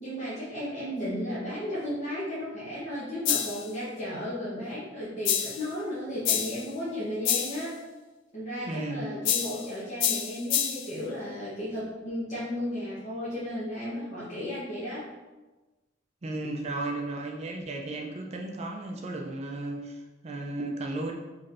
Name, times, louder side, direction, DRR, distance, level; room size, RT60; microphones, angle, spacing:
voice 1, 0.0-7.7 8.3-15.0, equal, 40° left, -10 dB, 1.0 m, -34 dB
sound 1, 3.2-3.7 5.2-5.7 6.2-6.7 7.2-7.7 9.2-9.7 10.0-10.9, left 9 dB, 75° left, 0.3 m, -27 dB
voice 2, 8.6-9.1 16.2-21.1, right 2 dB, 35° right, 1 dB, 0.4 m, -34 dB
4.1 x 3.1 x 2.5 m, 1.2 s
head